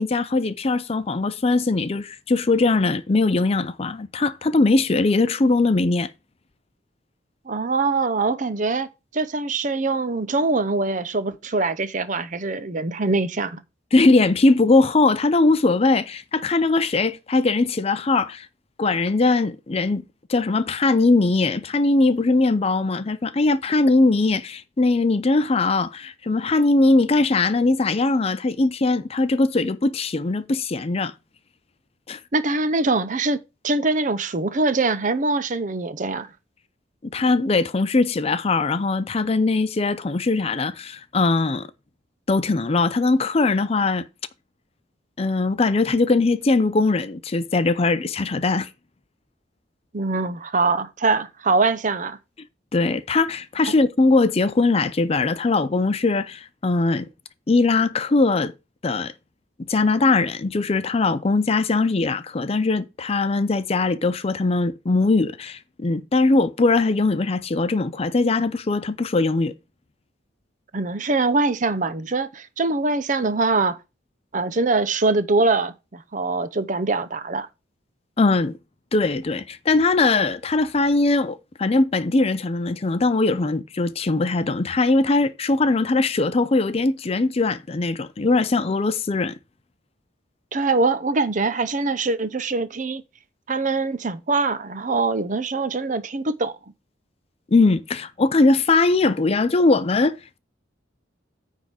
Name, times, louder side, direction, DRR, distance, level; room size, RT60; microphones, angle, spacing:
voice 1, 0.0-6.1 13.9-18.5 18.8-20.0 20.3-31.1 32.1-32.2 37.0-41.7 42.3-44.1 45.2-48.7 52.7-57.1 57.5-58.5 58.8-59.1 59.7-69.5 78.2-78.5 78.9-89.4 97.5-100.4, left 3 dB, 30° left, 0.5 m, -20 dB
voice 2, 7.5-8.9 9.1-13.6 32.3-33.4 33.6-36.3 49.9-52.2 53.6-53.7 70.7-73.8 74.3-77.5 90.5-93.0 93.5-96.5, right 3 dB, 40° right, 0.7 m, -23 dB
9.5 x 3.6 x 6.1 m
head